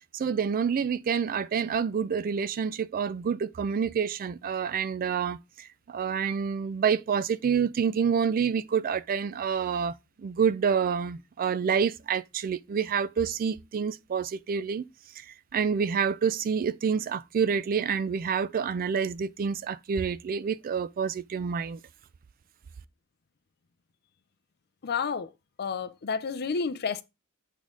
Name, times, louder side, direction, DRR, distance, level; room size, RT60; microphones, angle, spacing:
voice 1, 0.1-14.9 15.2-21.8, right 6 dB, 40° right, 0.3 m, -28 dB
voice 2, 24.8-25.3 25.6-27.0, left 5 dB, 45° left, 0.5 m, -30 dB
8.3 x 3.7 x 3.7 m
head